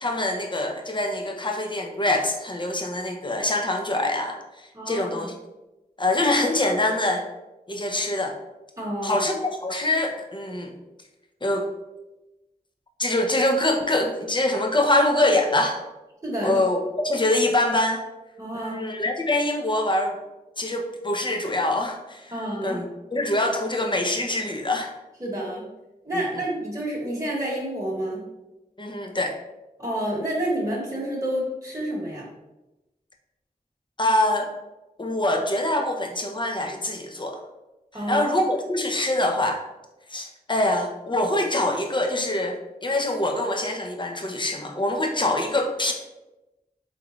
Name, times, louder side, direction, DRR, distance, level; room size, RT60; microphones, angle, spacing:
voice 1, 0.0-5.3 6.0-7.2 7.7-8.4 9.0-10.8 11.4-11.7 13.0-15.8 16.4-16.8 17.0-18.0 18.5-20.2 20.6-22.3 22.6-24.9 26.1-26.2 28.8-29.4 34.0-34.5 35.0-37.4 38.1-39.6 40.1-45.9, left 1 dB, 30° left, 2 dB, 0.6 m, -24 dB
voice 2, 4.7-5.1 8.8-9.3 16.2-16.6 18.4-18.8 22.3-22.8 25.2-25.6 26.0-28.2 29.8-32.3 37.9-38.2, right 1 dB, 20° right, -5 dB, 1.2 m, -29 dB
3.7 x 3.6 x 3.1 m, 1.0 s
wide cardioid pair, 50°, 16 cm